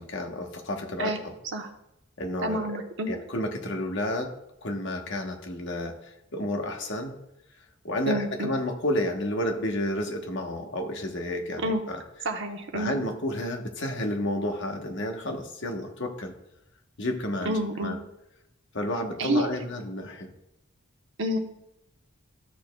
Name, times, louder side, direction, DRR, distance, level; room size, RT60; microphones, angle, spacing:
voice 1, 0.0-1.3 2.2-4.3 4.6-7.2 7.8-12.0 12.7-16.3 17.0-18.0 18.7-20.3, left 1 dB, 60° left, 4 dB, 1.1 m, -31 dB
voice 2, 2.4-3.1 8.1-8.5 11.6-11.8 12.2-12.9 17.4-18.0 19.2-19.5 21.2-21.4, right 1 dB, 60° right, 3 dB, 1.0 m, -28 dB
13.0 x 6.6 x 2.3 m, 0.84 s
head